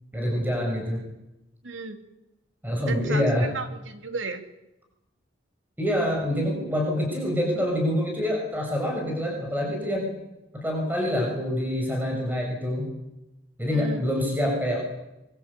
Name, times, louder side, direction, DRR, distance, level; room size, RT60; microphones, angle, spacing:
voice 1, 0.1-1.0 2.6-3.5 5.8-10.1 10.5-12.9 13.6-14.8, left 1 dB, 10° right, 0 dB, 6.2 m, -26 dB
voice 2, 1.6-2.0 2.9-3.3 3.5-4.5 13.7-14.0, right 4 dB, 85° right, 7 dB, 2.9 m, -34 dB
24.0 x 23.0 x 8.4 m, 0.93 s
head